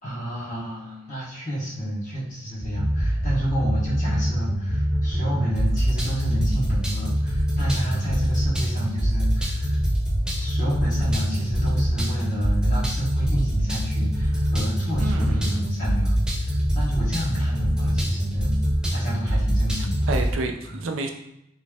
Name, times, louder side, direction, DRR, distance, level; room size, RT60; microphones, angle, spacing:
voice 1, 0.0-9.8 10.4-18.5 18.9-20.1 20.7-20.8, equal, 40° left, -6 dB, 1.2 m, -30 dB
sound 1, 2.6-20.3, equal, 5° right, 0.5 m, -24 dB
voice 2, 15.0-15.5 20.1-21.1, right 3 dB, 75° right, 4 dB, 0.5 m, -29 dB
4.1 x 3.1 x 2.3 m, 0.84 s
head